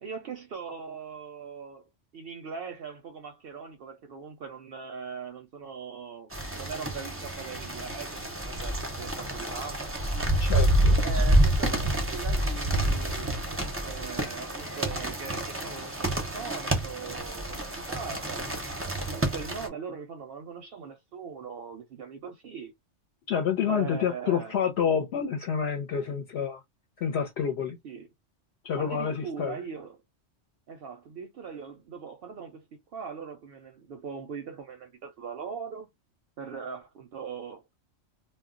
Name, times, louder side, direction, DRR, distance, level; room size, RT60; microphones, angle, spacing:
voice 1, 0.0-9.9 11.0-13.4 13.8-18.4 19.1-22.7 23.7-24.6 27.8-28.1 28.7-30.0 30.7-32.6 32.9-35.9 36.4-37.6, right 6 dB, 65° right, 0.7 m, -40 dB
sound 1, 6.3-19.7, right 1 dB, 20° right, 0.4 m, -28 dB
voice 2, 10.4-11.0 23.3-26.6 27.0-27.8 28.6-29.6, left 7 dB, 65° left, 0.8 m, -28 dB
2.2 x 2.1 x 3.6 m
omnidirectional pair, 1.2 m